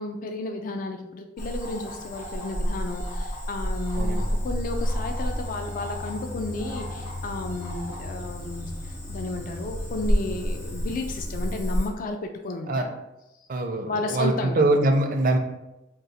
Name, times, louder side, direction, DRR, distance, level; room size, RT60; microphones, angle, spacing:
voice 1, 0.0-12.9 13.9-14.6, left 2 dB, 45° left, 5 dB, 0.3 m, -33 dB
Cricket / Frog, 1.4-11.9, equal, 65° left, 1.4 m, -31 dB
sound 1, 4.3-11.5, left 1 dB, 85° left, 0.8 m, -37 dB
voice 2, 13.5-15.4, right 2 dB, 50° right, 4 dB, 0.5 m, -23 dB
3.8 x 2.4 x 4.1 m, 0.91 s
head